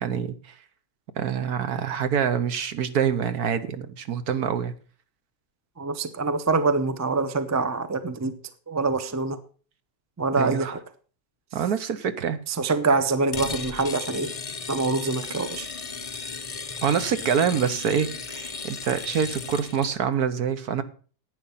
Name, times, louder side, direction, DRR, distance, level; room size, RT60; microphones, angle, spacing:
voice 1, 0.0-0.5 1.2-4.7 10.4-10.7 11.5-12.4 16.8-20.8, right 7 dB, 65° right, 12 dB, 1.4 m, -26 dB
voice 2, 5.8-8.3 8.7-9.4 10.2-10.8 12.5-14.3 14.7-15.7, right 3 dB, 20° right, 12 dB, 0.5 m, -25 dB
sound 1, 13.3-19.9, left 5 dB, 70° left, 0.3 m, -35 dB
11.0 x 9.0 x 5.6 m, 0.40 s
omnidirectional pair, 1.8 m